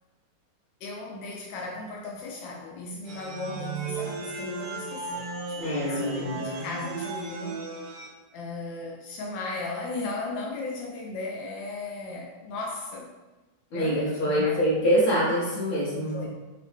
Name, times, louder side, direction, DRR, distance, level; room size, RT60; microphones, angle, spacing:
voice 1, 0.8-7.6 8.3-13.1 13.7-14.6 16.1-16.3, left 3 dB, 85° left, -1 dB, 1.3 m, -36 dB
sound 1, 3.1-8.1, right 4 dB, 70° right, 1.2 m, -36 dB
voice 2, 5.6-6.6 13.7-16.3, equal, 50° left, -7 dB, 1.9 m, -25 dB
5.3 x 2.8 x 3.5 m, 1.2 s
omnidirectional pair, 2.0 m